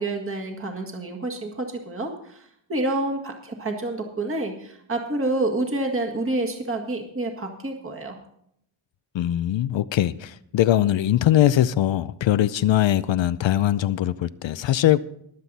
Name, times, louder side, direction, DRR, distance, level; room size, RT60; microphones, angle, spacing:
voice 1, 0.0-8.2, right 2 dB, 25° right, 1.8 m, -28 dB
voice 2, 9.1-15.0, left 12 dB, 65° left, 0.6 m, -21 dB
22.0 x 7.7 x 4.1 m
wide cardioid pair, 115°, 48 cm